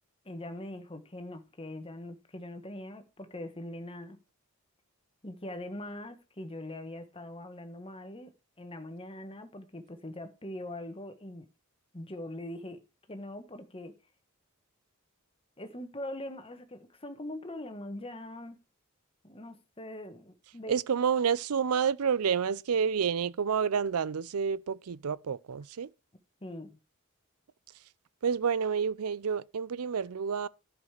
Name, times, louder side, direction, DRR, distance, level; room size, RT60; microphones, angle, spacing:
voice 1, 0.2-4.2 5.2-8.3 8.6-11.4 11.9-12.8 13.1-13.9 15.6-18.6 19.2-20.7 26.4-26.8, left 1 dB, 25° left, 1.4 m, -42 dB
voice 2, 20.7-25.9 28.2-30.5, right 6 dB, 85° right, 0.5 m, -29 dB
11.0 x 5.3 x 6.6 m
head